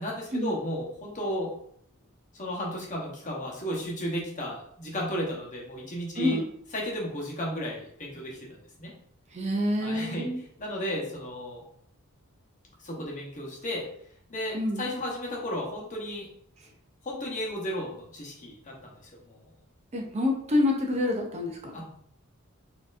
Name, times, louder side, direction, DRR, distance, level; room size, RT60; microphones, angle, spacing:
voice 1, 0.0-1.5 2.3-6.4 6.7-8.9 9.8-11.6 12.8-13.9 14.3-16.3 17.0-19.4 21.7-21.9, equal, 35° left, -3 dB, 1.0 m, -34 dB
voice 2, 9.3-10.4 14.5-14.8 19.9-21.8, left 1 dB, 30° right, 1 dB, 0.5 m, -27 dB
4.3 x 2.8 x 2.5 m, 0.66 s
head